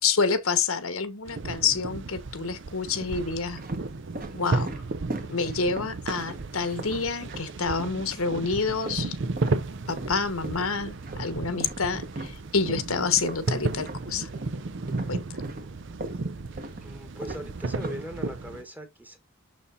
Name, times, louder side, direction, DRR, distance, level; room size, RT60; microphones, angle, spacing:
voice 1, 0.0-3.6 4.3-4.7 5.3-9.2 9.9-14.3 15.1-15.3, left 5 dB, 75° left, 1.3 m, -28 dB
sound 1, 1.3-18.6, right 3 dB, 55° right, 0.6 m, -34 dB
sound 2, 1.9-2.2 2.9-8.0 8.3-14.6 14.9-18.6, right 2 dB, 40° right, 1.3 m, -40 dB
voice 2, 16.8-19.2, equal, 5° right, 1.2 m, -40 dB
7.0 x 6.4 x 2.7 m
head